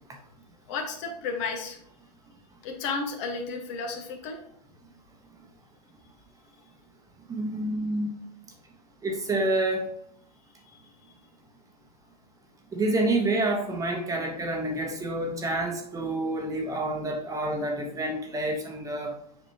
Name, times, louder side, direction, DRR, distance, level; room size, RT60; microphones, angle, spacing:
voice 1, 0.7-1.8 2.6-4.4, left 4 dB, 50° left, 4 dB, 1.4 m, -32 dB
voice 2, 7.3-8.1 9.0-9.9 12.7-19.1, right 2 dB, 15° right, 2 dB, 1.2 m, -28 dB
7.5 x 5.1 x 2.9 m, 0.69 s
hypercardioid pair, 110°, 21 cm